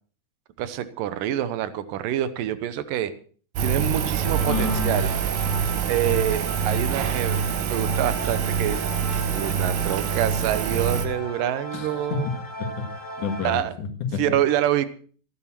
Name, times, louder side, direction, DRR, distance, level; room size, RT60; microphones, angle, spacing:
voice 1, 0.6-3.1 3.6-5.1 5.9-7.4 7.7-8.9 9.3-12.3 13.4-13.7 14.2-14.9, right 11 dB, 70° right, 13 dB, 2.2 m, -26 dB
Engine, 3.6-11.1, right 7 dB, 85° right, 3.7 m, -25 dB
sound 1, 4.2-13.6, right 1 dB, 20° left, 3.1 m, -37 dB
voice 2, 4.5-5.0 11.7-12.9 13.2-14.2, left 5 dB, 55° left, 4 dB, 2.9 m, -29 dB
15.5 x 11.0 x 5.9 m, 0.43 s
omnidirectional pair, 4.9 m